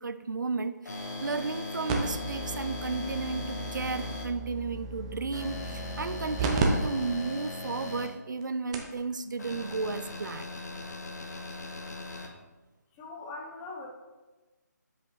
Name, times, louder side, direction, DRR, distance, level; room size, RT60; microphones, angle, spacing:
voice 1, 0.0-10.5, right 4 dB, 85° right, 12 dB, 0.4 m, -33 dB
sound 1, 0.8-4.2 5.3-8.1 9.4-12.3, left 2 dB, 65° left, 1.2 m, -39 dB
sound 2, 1.9-6.6 7.0-7.1 7.7-7.8 8.4-8.5 8.7-9.0 10.2-10.3, right 4 dB, 15° right, 0.5 m, -34 dB
voice 2, 13.0-13.9, left 3 dB, 15° left, -1 dB, 0.7 m, -41 dB
7.6 x 4.6 x 3.1 m, 1.2 s
figure-of-eight pair, 155°, 10 cm